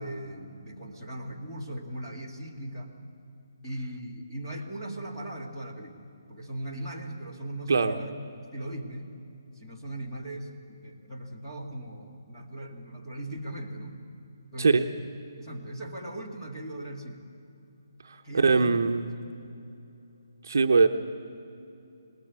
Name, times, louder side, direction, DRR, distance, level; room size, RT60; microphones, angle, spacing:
voice 1, 0.0-2.9 3.6-8.1 8.5-9.1 9.6-14.0 14.5-14.8 15.4-17.2 18.2-18.8 19.2-19.3, right 1 dB, 10° left, -6 dB, 2.1 m, -38 dB
voice 2, 18.0-19.1 20.4-20.9, right 4 dB, 50° right, 5 dB, 0.9 m, -22 dB
23.0 x 20.0 x 8.4 m, 2.8 s
hypercardioid pair, 175°, 2 cm